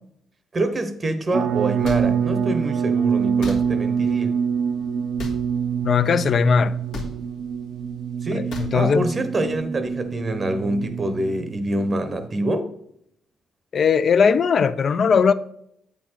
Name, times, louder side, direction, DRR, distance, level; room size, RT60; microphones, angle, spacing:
voice 1, 0.5-4.4 8.2-12.7, right 1 dB, 30° right, 0.7 m, -26 dB
sound 1, 1.3-12.3, right 7 dB, 85° right, 0.5 m, -25 dB
sound 2, 1.8-2.0 3.4-3.6 5.2-5.4 6.9-7.1 8.5-8.7, left 3 dB, 80° left, 1.5 m, -32 dB
voice 2, 5.8-6.7 8.3-9.1 13.7-15.3, left 6 dB, 50° left, 0.4 m, -19 dB
8.2 x 4.4 x 4.4 m
cardioid pair, 90°, 0 cm